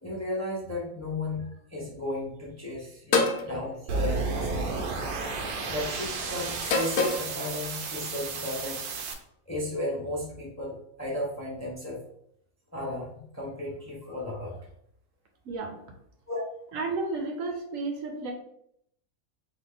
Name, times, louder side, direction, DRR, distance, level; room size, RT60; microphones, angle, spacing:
voice 1, 0.0-4.8 5.4-8.9 9.5-12.0 12.7-14.6 16.3-16.4, left 1 dB, 15° left, -4 dB, 0.7 m, -34 dB
sound 1, 3.1-3.5 4.6-5.0 6.6-7.3, left 3 dB, 75° left, 1.1 m, -25 dB
sound 2, 3.9-9.1, right 4 dB, 85° right, 1.2 m, -32 dB
voice 2, 15.5-15.8 16.7-18.3, right 3 dB, 65° right, 3 dB, 1.1 m, -32 dB
4.0 x 2.8 x 3.7 m, 0.71 s
omnidirectional pair, 1.6 m